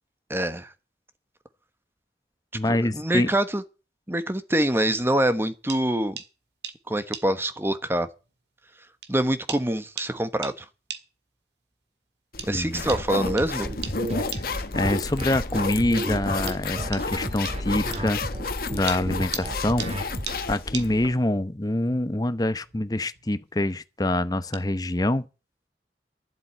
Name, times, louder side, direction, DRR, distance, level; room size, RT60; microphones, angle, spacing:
voice 1, 0.3-0.7 2.7-3.6 4.1-6.2 6.9-8.1 9.1-10.6 12.4-13.7, right 1 dB, 15° right, 1.2 m, -25 dB
voice 2, 2.5-3.3 12.5-12.8 14.2-14.3 14.7-18.2 18.7-20.1 20.5-25.3, left 1 dB, 20° left, 0.9 m, -25 dB
sound 1, 5.7-5.8 6.2-6.3 6.6-6.8 7.1-7.3 8.2-8.3 9.0-9.1 9.5-9.7 10.0-10.1 10.4-10.6 10.9-11.1 12.4-12.5 12.9-13.0 13.4-13.5 13.8-14.0 14.3-14.5 16.0-16.1 16.5-16.6 16.9-17.1 17.5-17.6 17.9-18.1 18.9-19.5 19.8-19.9 20.3-20.4 20.7-20.9 22.5-22.8 23.1-23.4 24.5-24.6, right 8 dB, 80° right, 2.0 m, -36 dB
sound 2, 12.3-21.1, left 3 dB, 55° left, 1.4 m, -31 dB
sound 3, 12.9-20.4, right 1 dB, 35° right, 2.8 m, -33 dB
12.0 x 7.9 x 9.4 m
head